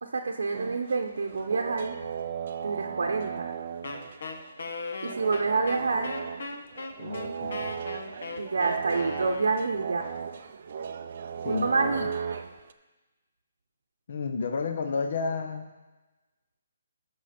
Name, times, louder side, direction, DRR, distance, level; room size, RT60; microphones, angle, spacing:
voice 1, 0.0-1.9 2.6-3.5 5.0-6.1 8.4-10.1 11.4-12.4, right 4 dB, 70° right, 3 dB, 0.8 m, -28 dB
sound 1, 0.5-4.7 5.1-12.7, right 7 dB, 35° right, 0.4 m, -36 dB
Wind instrument woodwind instrument, 3.8-9.9, left 3 dB, 60° left, 1.1 m, -38 dB
voice 2, 7.0-7.8 11.4-12.1 14.1-15.7, left 4 dB, 40° left, 7 dB, 0.7 m, -32 dB
14.0 x 6.3 x 4.3 m, 1.2 s
hypercardioid pair, 180°, 0 cm